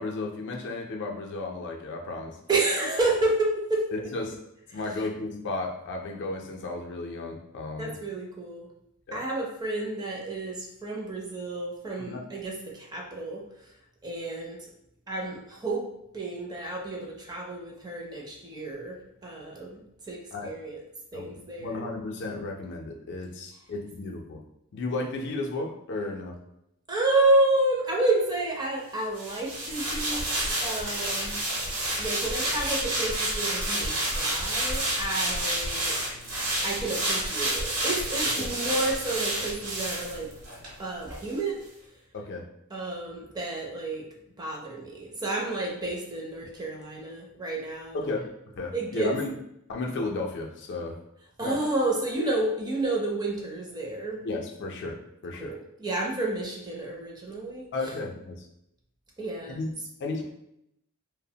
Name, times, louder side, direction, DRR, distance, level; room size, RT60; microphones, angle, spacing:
voice 1, 0.0-2.4 3.9-4.4 4.7-7.9 9.1-9.2 12.0-12.2 20.3-20.5 21.1-24.4 24.7-26.4 38.4-38.5 42.1-42.4 47.9-49.3 49.7-51.0 51.4-51.6 54.2-55.6 57.7-58.5 59.5-60.3, left 2 dB, 50° left, 1 dB, 0.4 m, -34 dB
voice 2, 2.5-3.9 7.8-8.7 9.1-13.4 14.0-14.7 15.1-15.9 16.1-20.8 21.1-21.9 26.9-30.3 30.6-31.4 32.0-36.0 36.6-40.3 40.8-41.6 42.7-44.0 44.4-48.1 48.7-49.1 51.4-54.2 55.4-57.7 59.2-59.6, right 2 dB, 20° right, -2 dB, 0.4 m, -30 dB
sound 1, 29.2-40.7 41.1-41.2, right 1 dB, 70° right, 1.0 m, -29 dB
2.7 x 2.0 x 2.7 m, 0.80 s
head